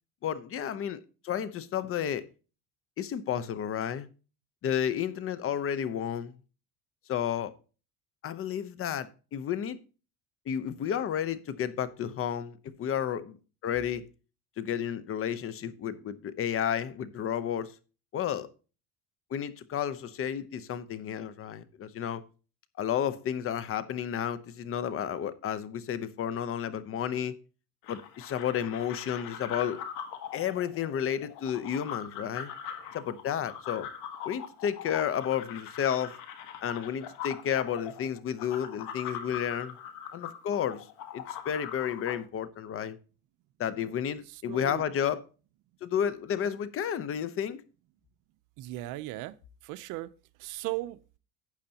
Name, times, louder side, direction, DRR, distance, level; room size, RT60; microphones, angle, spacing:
voice 1, 0.2-2.2 3.0-4.1 4.6-6.3 7.1-7.5 8.2-9.8 10.5-13.4 13.6-14.0 14.6-17.7 18.1-18.5 19.3-22.2 22.8-27.3 27.9-29.8 30.3-32.5 32.9-33.9 34.2-36.1 36.6-39.8 40.1-40.9 41.1-43.0 43.6-45.2 45.8-47.6, left 9 dB, 45° left, 0.9 m, -32 dB
sound 1, 27.8-42.2, left 8 dB, 80° left, 1.6 m, -42 dB
voice 2, 44.5-44.8 48.6-49.3 49.6-50.1 50.4-51.0, right 17 dB, 75° right, 0.7 m, -36 dB
12.0 x 8.4 x 2.9 m
cardioid pair, 125°, 31 cm